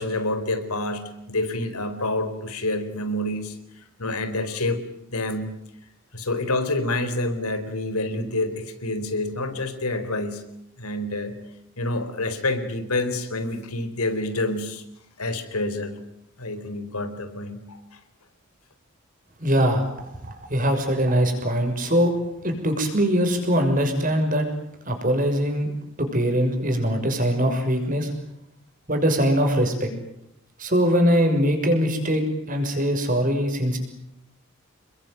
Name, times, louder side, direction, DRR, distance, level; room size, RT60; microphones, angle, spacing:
voice 1, 0.0-4.8 5.1-5.5 6.1-10.4 10.8-11.4 11.8-14.8 15.2-16.0 16.4-18.0, left 2 dB, 90° left, 9 dB, 4.3 m, -28 dB
voice 2, 19.4-19.8 20.3-22.1 22.4-24.5 24.9-25.7 26.0-28.1 28.9-29.9 30.6-33.8, equal, 35° right, 5 dB, 6.4 m, -22 dB
29.5 x 22.0 x 9.2 m, 0.77 s
head